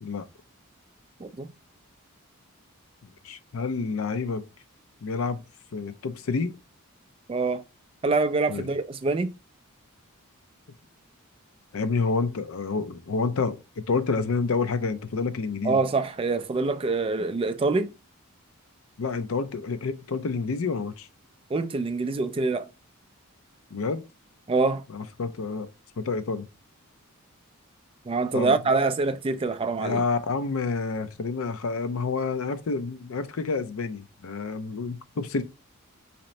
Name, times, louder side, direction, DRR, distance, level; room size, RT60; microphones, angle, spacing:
voice 1, 3.2-4.5 5.0-5.4 5.7-6.6 8.5-8.7 11.7-15.8 19.0-21.1 23.7-24.0 24.9-25.7 26.0-26.5 28.3-28.8 29.8-35.4, left 4 dB, 65° left, 0.5 m, -29 dB
voice 2, 7.3-7.6 8.0-9.3 15.6-17.9 21.5-22.7 24.5-24.8 28.1-30.0, right 3 dB, 25° right, 0.3 m, -25 dB
3.0 x 2.8 x 4.1 m
head